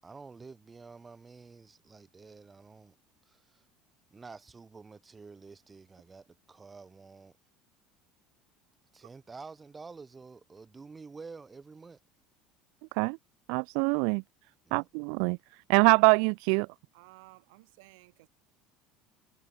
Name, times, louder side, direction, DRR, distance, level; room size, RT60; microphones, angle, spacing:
voice 1, 0.0-3.0 3.2-3.7 4.1-7.4 8.9-12.0 14.6-14.9, right 4 dB, 15° right, 7.2 m, -49 dB
voice 2, 13.5-14.2 14.7-15.4 15.7-16.7, right 40 dB or more, 65° right, 0.4 m, -24 dB
voice 3, 16.9-18.3, right 27 dB, 85° right, 6.8 m, -55 dB
cardioid pair, 165°, 0 cm